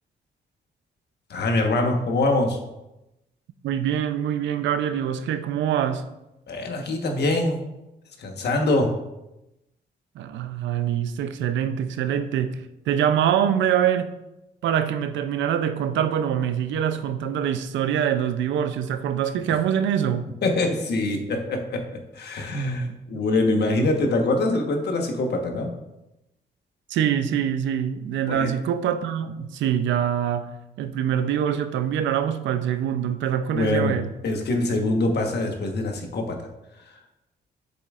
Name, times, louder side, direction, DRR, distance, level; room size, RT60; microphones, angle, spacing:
voice 1, 1.3-2.6 6.5-7.6 8.2-8.9 20.4-25.7 28.3-28.5 33.5-36.5, left 2 dB, 65° left, 1.3 m, -24 dB
voice 2, 3.6-6.0 10.2-14.1 14.6-20.2 23.1-23.2 26.9-30.5 30.8-34.1, right 9 dB, 90° right, 0.5 m, -24 dB
7.8 x 6.9 x 2.5 m
cardioid pair, 85°, 19 cm